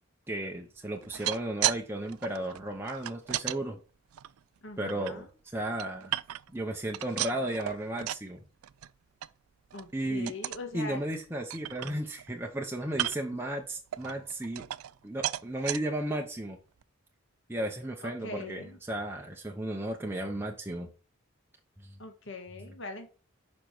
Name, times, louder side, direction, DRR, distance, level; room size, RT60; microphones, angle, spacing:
voice 1, 0.3-3.8 4.8-5.3 5.5-6.1 6.5-8.4 9.9-10.3 10.7-14.6 15.0-16.6 17.5-20.9 21.8-22.0, right 1 dB, 10° right, 1 dB, 0.8 m, -34 dB
sound 1, 1.0-1.8 2.1-3.6 4.1-5.1 5.6-6.6 6.9-8.3 8.6-8.9 9.2-9.3 9.7-9.9 10.3-10.7 11.1-11.2 11.5-12.3 12.9-13.4 13.9-15.0 15.2-15.8 16.4-16.5 16.8-16.9, right 14 dB, 85° right, 0.4 m, -34 dB
voice 2, 4.6-5.3 9.7-11.0 18.0-18.8 22.0-23.1, left 2 dB, 60° left, 5 dB, 1.7 m, -42 dB
6.8 x 5.3 x 4.5 m, 0.37 s
head